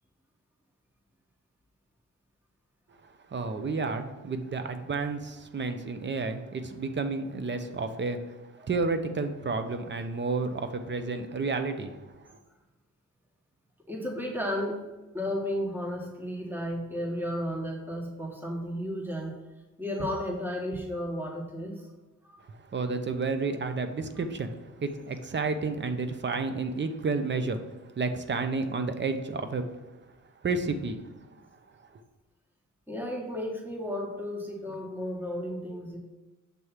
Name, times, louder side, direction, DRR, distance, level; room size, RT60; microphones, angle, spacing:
voice 1, 3.3-8.4 8.7-12.4 22.5-27.6 28.0-29.7 30.4-31.0, right 3 dB, 35° right, 8 dB, 0.6 m, -31 dB
voice 2, 13.9-14.8 15.1-19.4 19.8-21.9 22.2-22.4 32.9-36.0, equal, 5° right, 0 dB, 1.2 m, -33 dB
6.8 x 3.2 x 5.6 m, 1.1 s
cardioid pair, 90°, 31 cm